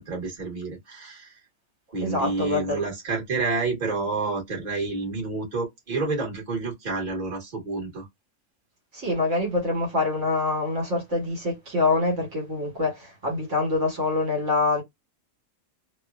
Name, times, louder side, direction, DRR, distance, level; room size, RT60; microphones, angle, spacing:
voice 1, 0.0-1.4 1.9-8.1, right 3 dB, 35° right, 1.3 m, -29 dB
voice 2, 2.0-2.8 8.9-14.8, left 3 dB, 70° right, 1.5 m, -25 dB
3.0 x 2.1 x 2.3 m
omnidirectional pair, 1.3 m